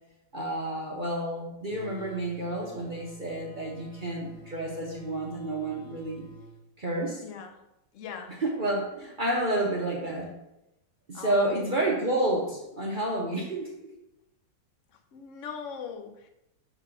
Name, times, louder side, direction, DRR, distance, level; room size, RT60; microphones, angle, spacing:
voice 1, 0.3-6.2 6.8-7.2 8.4-10.3 11.1-13.7, right 1 dB, 40° right, -2 dB, 0.7 m, -30 dB
sound 1, 1.7-6.6, equal, 85° left, 1.5 m, -48 dB
voice 2, 7.2-7.6 7.9-8.4 11.1-11.9 14.9-16.3, left 6 dB, 60° left, 6 dB, 0.9 m, -41 dB
5.7 x 4.0 x 5.7 m, 0.89 s
omnidirectional pair, 2.0 m